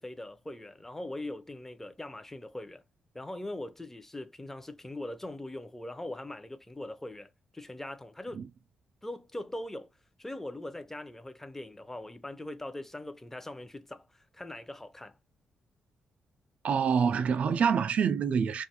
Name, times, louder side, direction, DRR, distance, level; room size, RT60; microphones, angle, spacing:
voice 1, 0.0-2.8 3.1-8.4 9.0-9.9 10.2-15.2, left 1 dB, 15° left, 0.6 m, -41 dB
voice 2, 16.6-18.6, right 6 dB, 60° right, 0.3 m, -26 dB
2.5 x 2.4 x 2.8 m
supercardioid pair, 60°, 3 cm